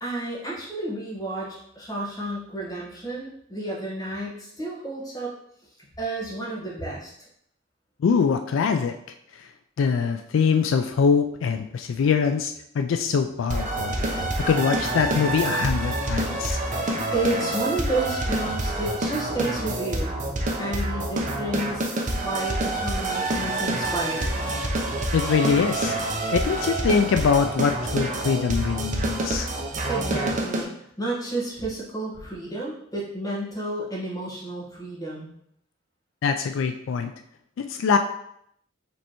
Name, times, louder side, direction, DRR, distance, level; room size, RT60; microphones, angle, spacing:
voice 1, 0.0-5.3 6.0-7.1 17.1-20.1 20.6-24.6 29.9-30.7 31.0-35.3, right 2 dB, 20° left, -5 dB, 1.3 m, -31 dB
voice 2, 8.0-9.0 9.3-9.5 9.8-16.6 25.1-29.5 36.2-37.1 37.6-38.0, left 6 dB, 80° left, 7 dB, 0.3 m, -23 dB
sound 1, 13.5-30.6, right 2 dB, 40° right, 0.7 m, -27 dB
5.2 x 3.3 x 3.0 m, 0.72 s
head